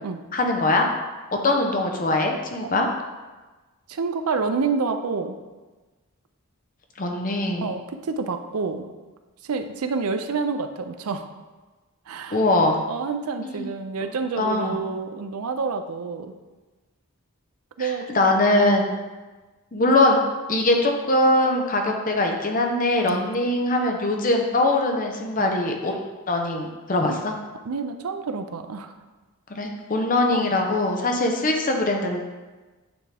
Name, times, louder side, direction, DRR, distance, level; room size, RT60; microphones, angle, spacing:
voice 1, 0.3-0.9 1.4-2.9 7.0-7.7 12.3-12.8 13.4-13.7 14.4-14.8 17.8-18.9 19.7-20.2 20.5-26.0 26.3-27.3 29.5-32.2, left 2 dB, 40° left, 2 dB, 0.7 m, -22 dB
voice 2, 3.9-5.4 7.6-8.9 9.4-11.3 12.1-12.4 12.9-16.3 17.8-18.0 18.3-18.4 23.1-23.3 25.4-25.5 27.1-27.2 27.6-28.9 30.3-30.5, right 4 dB, 80° right, 8 dB, 0.5 m, -28 dB
8.9 x 3.6 x 3.4 m, 1.2 s
head